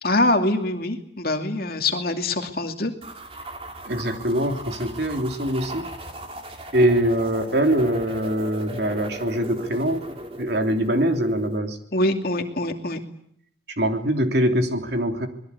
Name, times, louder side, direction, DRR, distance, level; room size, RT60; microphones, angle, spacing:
voice 1, 0.0-2.9 11.9-13.0, left 2 dB, 50° left, 4 dB, 2.6 m, -24 dB
sound 1, 3.0-11.6, right 1 dB, 30° right, 2.9 m, -38 dB
voice 2, 3.8-5.9 6.7-10.1 10.4-11.8 13.8-15.3, right 1 dB, 60° right, 4 dB, 3.2 m, -23 dB
26.0 x 21.0 x 8.4 m, 0.71 s
head